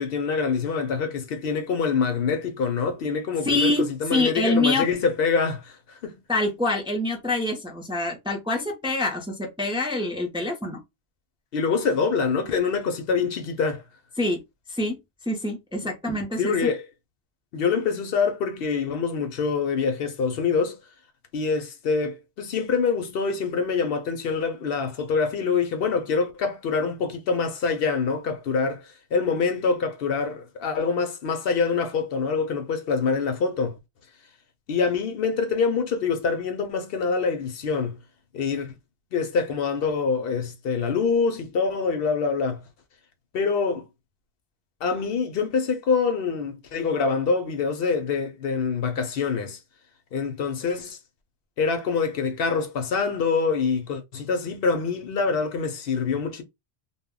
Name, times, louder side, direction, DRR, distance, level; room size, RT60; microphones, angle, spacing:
voice 1, 0.0-5.8 6.0-6.2 11.5-13.8 16.4-16.8 17.5-20.8 21.3-33.8 34.7-38.0 38.3-38.7 39.1-42.6 43.3-43.9 44.8-49.6 50.1-51.0 51.6-56.4, left 5 dB, 70° left, 0.8 m, -25 dB
voice 2, 3.4-3.8 4.1-4.9 6.3-10.8 14.2-14.4 14.7-15.0 15.3-16.7, left 2 dB, 5° right, 0.5 m, -25 dB
2.2 x 2.1 x 3.6 m
omnidirectional pair, 1.0 m